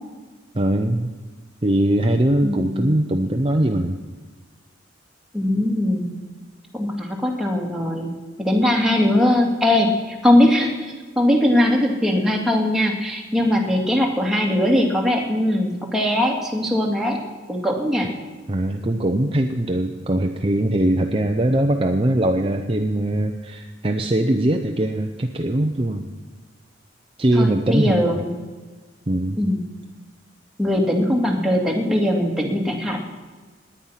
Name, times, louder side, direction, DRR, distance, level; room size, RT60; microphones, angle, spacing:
voice 1, 0.5-1.1 1.6-4.0 18.5-26.1 27.2-28.2 29.1-29.4, right 1 dB, 30° right, 4 dB, 0.7 m, -21 dB
voice 2, 2.4-2.9 5.3-6.1 6.7-8.1 8.4-17.2 17.5-18.1 27.3-28.3 29.4-29.6 30.6-33.0, left 1 dB, ahead, -1 dB, 2.2 m, -20 dB
18.5 x 10.0 x 5.8 m, 1.4 s
head